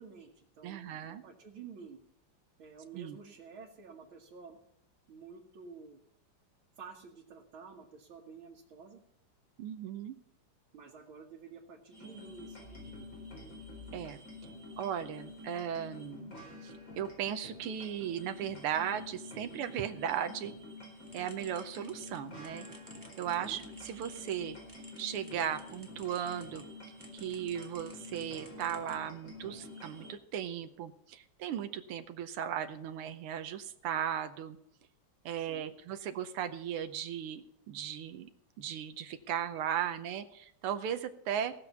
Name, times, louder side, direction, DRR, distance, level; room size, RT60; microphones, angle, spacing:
voice 1, 0.0-2.0 2.6-4.6 5.1-6.0 6.8-9.0 10.7-13.1 23.2-23.6 35.4-35.7, right 5 dB, 70° right, -2 dB, 2.3 m, -51 dB
voice 2, 0.6-1.2 2.9-3.2 9.6-10.1 13.9-14.2 14.8-16.3 16.6-20.5 21.1-22.7 23.2-24.6 25.0-26.6 27.1-34.6 35.2-38.3 38.6-41.5, right 9 dB, 90° right, 8 dB, 1.7 m, -37 dB
sound 1, 11.9-30.1, left 2 dB, 35° left, 4.9 m, -48 dB
sound 2, 21.0-26.6 27.0-29.4, right 1 dB, 10° right, 2.2 m, -57 dB
18.0 x 6.9 x 7.0 m, 0.74 s
omnidirectional pair, 2.4 m